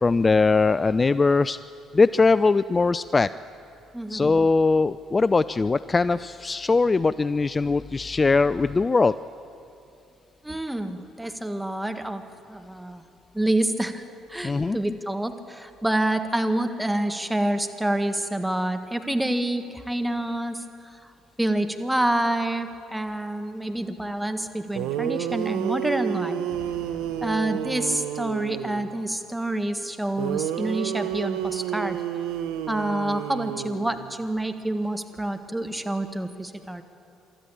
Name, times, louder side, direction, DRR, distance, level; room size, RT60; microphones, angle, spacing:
voice 1, 0.0-1.6 1.9-3.3 4.1-9.2 14.4-14.8, left 3 dB, 30° left, 16 dB, 0.4 m, -21 dB
voice 2, 3.9-4.3 10.4-12.2 12.5-13.0 13.3-14.0 14.3-20.6 20.9-21.0 21.4-26.4 27.2-32.0 32.7-36.8, right 1 dB, 5° right, 7 dB, 1.7 m, -27 dB
sound 1, 24.5-24.6 24.7-28.9 30.2-34.2, right 10 dB, 75° right, 0.7 m, -30 dB
Explosion, 26.4-28.6, left 3 dB, 75° left, 3.9 m, -48 dB
25.0 x 13.5 x 8.6 m, 2.6 s
hypercardioid pair, 55°, 0 cm